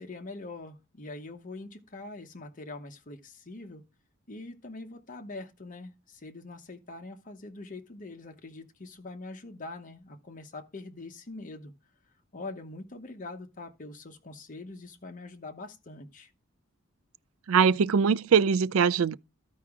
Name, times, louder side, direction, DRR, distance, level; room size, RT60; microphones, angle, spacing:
voice 1, 0.0-3.8 4.3-11.7 12.3-16.3, left 2 dB, 40° left, 0.9 m, -43 dB
voice 2, 17.5-19.1, right 6 dB, 90° right, 0.4 m, -22 dB
14.0 x 4.8 x 3.6 m
head